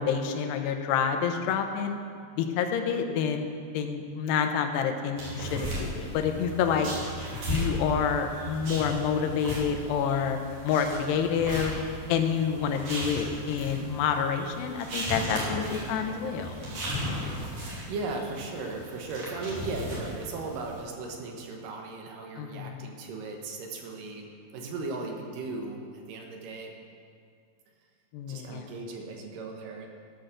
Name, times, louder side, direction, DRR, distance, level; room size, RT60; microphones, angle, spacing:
voice 1, 0.0-2.0 2.4-3.5 3.7-6.9 7.5-10.4 10.6-11.7 12.1-16.5 22.4-22.9 28.1-28.7, left 7 dB, 85° left, 6 dB, 3.0 m, -28 dB
sound 1, 5.2-20.8, equal, 50° right, 4.1 m, -36 dB
voice 2, 17.9-26.7 28.3-29.9, right 3 dB, 65° right, 2 dB, 2.4 m, -37 dB
14.5 x 6.3 x 6.5 m, 2.2 s
omnidirectional pair, 4.7 m